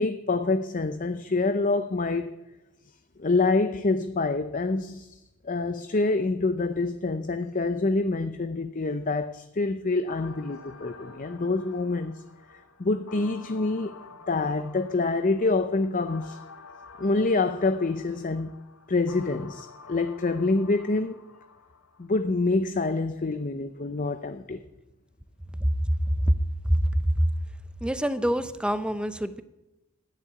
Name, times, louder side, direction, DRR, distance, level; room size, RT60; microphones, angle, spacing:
voice 1, 0.0-2.3 3.2-12.2 12.5-14.0 14.3-16.4 17.0-18.5 18.9-21.2 22.0-24.6, left 3 dB, 35° left, 9 dB, 0.6 m, -26 dB
sound 1, 10.1-22.1, left 4 dB, 70° left, 1.2 m, -49 dB
voice 2, 25.5-26.3 26.6-27.3 27.8-29.4, equal, 5° right, 12 dB, 0.7 m, -25 dB
13.5 x 10.0 x 9.8 m, 1.0 s
head